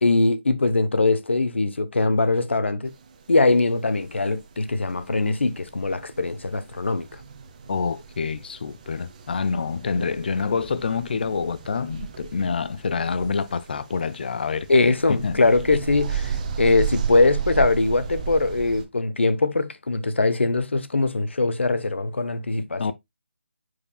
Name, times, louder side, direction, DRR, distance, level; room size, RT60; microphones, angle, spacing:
voice 1, 0.0-2.9 3.3-7.2 14.7-22.9, left 3 dB, 70° left, 1.0 m, -22 dB
sound 1, 2.9-18.8, right 7 dB, 35° right, 1.2 m, -35 dB
voice 2, 7.7-15.4 22.8-22.9, left 5 dB, 50° left, 0.6 m, -27 dB
9.6 x 4.8 x 2.3 m
figure-of-eight pair, 150°, 7 cm